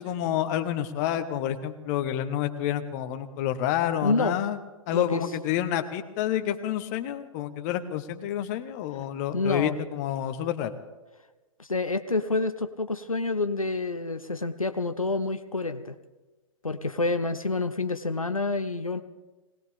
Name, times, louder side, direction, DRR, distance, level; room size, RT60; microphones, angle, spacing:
voice 1, 0.0-4.6 4.9-10.7, left 11 dB, 30° left, 9 dB, 1.0 m, -29 dB
voice 2, 4.0-4.4 4.9-5.2 9.3-9.8 11.6-15.9 16.6-19.0, left 3 dB, 90° left, 10 dB, 0.8 m, -28 dB
21.0 x 18.5 x 3.6 m, 1.2 s
figure-of-eight pair, 120°, 17 cm